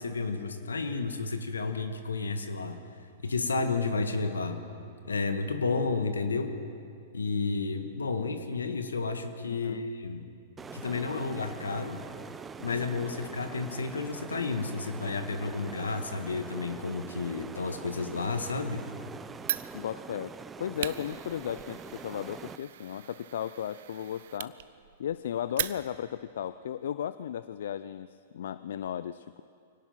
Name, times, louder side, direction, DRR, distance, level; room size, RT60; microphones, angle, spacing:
voice 1, 0.0-2.8 3.2-4.6 5.0-6.6 7.1-10.3 10.7-12.0 12.6-18.9, left 4 dB, 85° left, 7 dB, 1.8 m, -31 dB
voice 2, 9.5-9.9 19.7-24.6 25.0-29.4, left 9 dB, 70° left, 15 dB, 0.5 m, -35 dB
sound 1, 10.6-22.6, right 5 dB, 15° right, 0.6 m, -44 dB
Fire, 19.4-26.2, right 12 dB, 60° right, 0.7 m, -39 dB
24.5 x 18.0 x 5.9 m, 2.5 s
hypercardioid pair, 110°, 0 cm